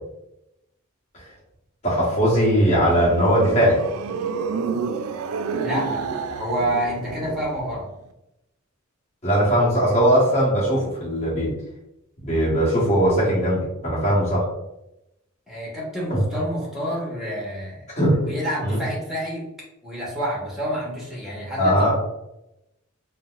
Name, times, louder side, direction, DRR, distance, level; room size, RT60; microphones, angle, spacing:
voice 1, 1.8-3.8 9.2-11.5 12.2-14.4 16.1-16.2 18.0-18.2 18.6-18.8 21.6-21.9, equal, 30° left, -8 dB, 1.2 m, -19 dB
sound 1, 2.4-7.8, right 5 dB, 80° right, 0.3 m, -29 dB
voice 2, 5.6-6.0 6.4-7.9 15.5-17.9 18.3-19.5 19.8-21.9, equal, ahead, -5 dB, 1.0 m, -28 dB
3.9 x 2.1 x 2.4 m, 0.88 s
head